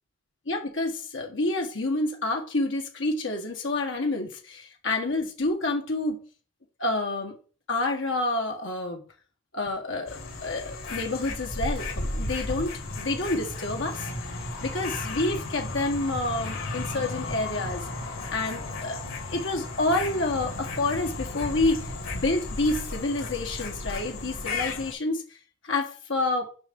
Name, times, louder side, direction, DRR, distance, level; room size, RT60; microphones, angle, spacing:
voice 1, 0.5-6.2 6.8-7.4 7.7-9.0 9.5-14.1 14.6-17.9 18.3-19.0 19.3-25.2 25.6-26.5, left 2 dB, 65° left, 1.6 m, -28 dB
sound 1, 10.1-24.9, left 2 dB, 90° left, 2.7 m, -34 dB
7.0 x 5.7 x 5.5 m
head